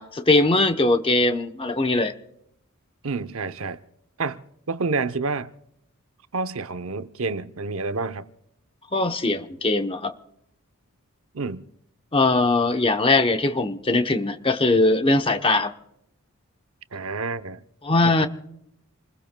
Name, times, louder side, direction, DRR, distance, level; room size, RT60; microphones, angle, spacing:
voice 1, 0.0-2.1 8.9-10.1 12.1-15.7 17.8-18.3, left 2 dB, 25° left, 0.8 m, -21 dB
voice 2, 3.0-3.8 4.2-4.4 4.7-5.5 6.3-8.3 11.3-11.6 16.9-17.6 18.0-18.3, right 4 dB, 70° right, 0.7 m, -28 dB
28.5 x 21.0 x 2.2 m
head